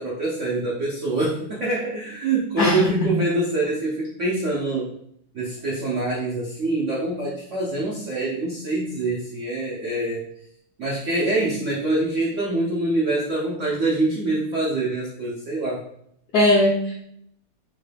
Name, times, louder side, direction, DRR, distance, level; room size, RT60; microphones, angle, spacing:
voice 1, 0.0-4.9 5.3-10.3 10.8-15.9, right 2 dB, 75° right, -5 dB, 0.7 m, -25 dB
voice 2, 2.6-3.1 16.3-17.1, left 1 dB, 65° left, -3 dB, 1.1 m, -20 dB
3.7 x 2.2 x 3.3 m, 0.71 s
omnidirectional pair, 2.2 m